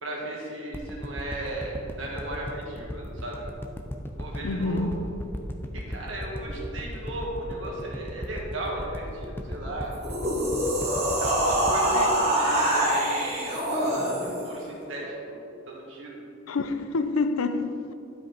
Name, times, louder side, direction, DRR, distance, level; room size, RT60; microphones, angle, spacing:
voice 1, 0.0-3.5 4.1-4.9 5.7-9.9 11.2-13.6 14.4-16.2, right 1 dB, 70° right, -3 dB, 1.9 m, -35 dB
sound 1, 0.7-13.1 13.5-13.6, left 1 dB, 10° left, 0.4 m, -37 dB
voice 2, 4.4-5.0 11.9-12.2 14.5-14.7 16.5-17.9, left 3 dB, 85° left, 10 dB, 0.5 m, -28 dB
sound 2, 9.9-14.5, right 1 dB, 30° right, 1.9 m, -25 dB
11.5 x 5.2 x 4.0 m, 2.7 s
head